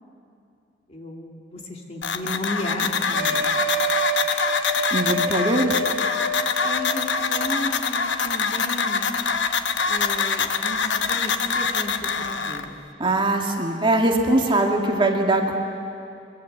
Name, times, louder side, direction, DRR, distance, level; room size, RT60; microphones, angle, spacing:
voice 1, 0.9-3.6 6.6-9.1 9.9-12.8, left 1 dB, 35° left, 1 dB, 2.7 m, -33 dB
sound 1, 2.0-12.6, left 5 dB, 75° left, 1.0 m, -24 dB
sound 2, 3.1-7.5, right 2 dB, 60° right, 1.7 m, -28 dB
voice 2, 4.9-5.8 13.0-15.5, right 2 dB, 25° right, 2 dB, 1.9 m, -21 dB
22.5 x 22.5 x 8.2 m, 2.5 s
head